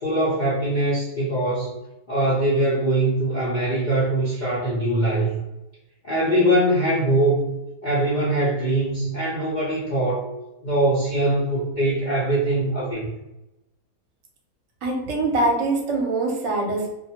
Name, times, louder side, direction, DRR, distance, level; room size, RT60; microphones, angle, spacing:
voice 1, 0.0-1.7 2.1-5.4 6.0-7.5 7.8-10.3 10.6-13.1, right 1 dB, 80° left, -8 dB, 0.4 m, -22 dB
voice 2, 14.8-16.9, right 2 dB, 60° right, -1 dB, 0.9 m, -23 dB
2.5 x 2.2 x 2.8 m, 0.95 s
omnidirectional pair, 1.7 m